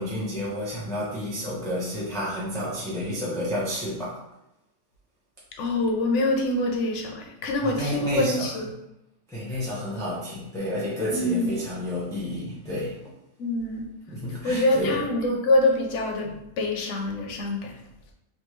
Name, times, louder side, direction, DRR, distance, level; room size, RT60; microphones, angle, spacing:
voice 1, 0.0-4.1 7.6-8.7 9.3-12.9 14.1-15.0, left 1 dB, 5° left, -7 dB, 0.4 m, -30 dB
voice 2, 5.6-8.7 11.1-11.5 13.4-13.8 14.4-17.8, left 2 dB, 65° left, 2 dB, 0.9 m, -25 dB
3.5 x 2.3 x 3.1 m, 0.85 s
omnidirectional pair, 1.5 m